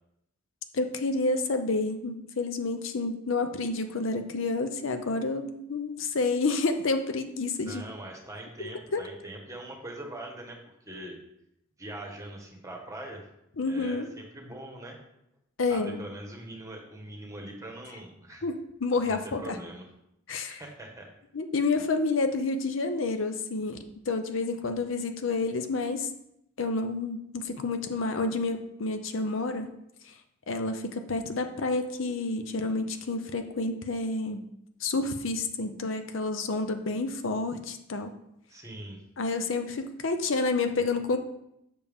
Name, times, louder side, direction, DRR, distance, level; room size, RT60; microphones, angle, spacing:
voice 1, 0.7-7.8 8.6-9.1 13.6-14.1 15.6-16.0 18.4-19.6 20.3-20.6 21.3-26.1 26.6-29.7 30.5-34.4 34.8-38.1 39.2-41.2, left 3 dB, 70° left, 7 dB, 0.6 m, -29 dB
voice 2, 7.6-11.2 11.8-13.3 13.7-15.0 15.7-18.4 19.0-19.9 20.5-21.1 38.5-39.0, right 1 dB, 15° right, 1 dB, 1.3 m, -42 dB
6.9 x 6.7 x 3.5 m, 0.78 s
head